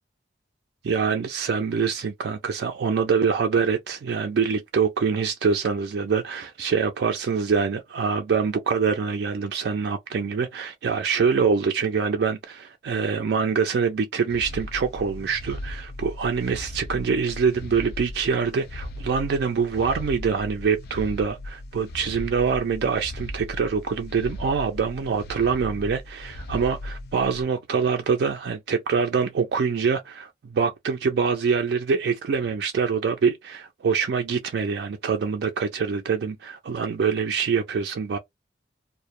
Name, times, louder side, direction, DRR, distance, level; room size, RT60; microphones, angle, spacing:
voice 1, 0.8-38.2, right 5 dB, 65° right, 0.3 m, -25 dB
sound 1, 14.3-27.4, left 1 dB, 55° left, 0.4 m, -37 dB
2.1 x 2.0 x 2.9 m
head